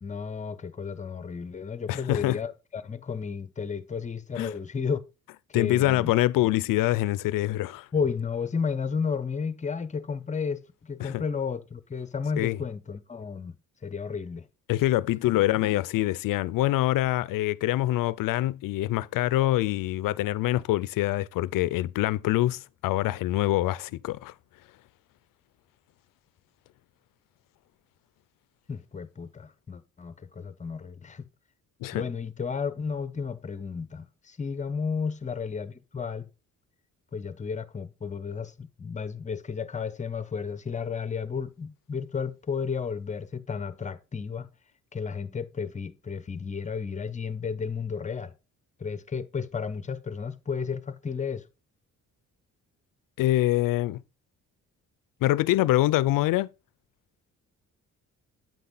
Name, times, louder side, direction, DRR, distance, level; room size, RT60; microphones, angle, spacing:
voice 1, 0.0-5.0 5.5-6.1 7.9-13.5 13.8-14.4 28.7-31.2 31.9-36.3 37.1-44.5 44.9-48.3 48.8-51.4, left 5 dB, 20° left, 0.7 m, -33 dB
voice 2, 1.9-2.4 4.4-4.5 5.5-7.9 11.0-11.2 12.4-12.6 14.7-24.3 31.8-32.0 53.2-54.0 55.2-56.5, left 16 dB, 90° left, 0.5 m, -25 dB
9.0 x 5.8 x 3.8 m
cardioid pair, 115°, 32 cm